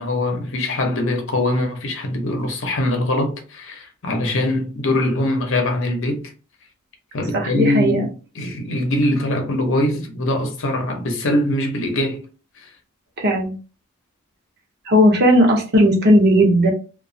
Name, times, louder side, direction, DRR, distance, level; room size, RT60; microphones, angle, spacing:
voice 1, 0.0-6.2 7.1-12.2 12.6-12.7, left 1 dB, 60° left, 0.8 m, -22 dB
voice 2, 7.3-8.1 13.2-13.5 14.9-16.7, equal, 45° right, 0.8 m, -15 dB
2.9 x 2.3 x 2.6 m
head